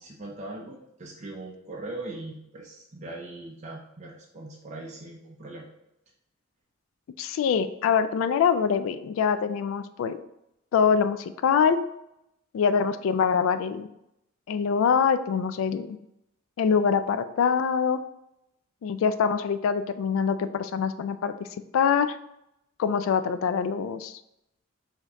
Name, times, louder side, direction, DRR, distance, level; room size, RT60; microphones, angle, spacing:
voice 1, 0.0-5.7, right 2 dB, 35° right, -2 dB, 0.5 m, -40 dB
voice 2, 7.2-10.2 10.7-11.8 12.5-13.9 14.5-16.0 16.6-18.0 18.8-21.3 21.7-22.2 22.8-24.2, left 6 dB, 85° left, 12 dB, 0.3 m, -24 dB
5.1 x 2.7 x 3.5 m, 0.83 s
head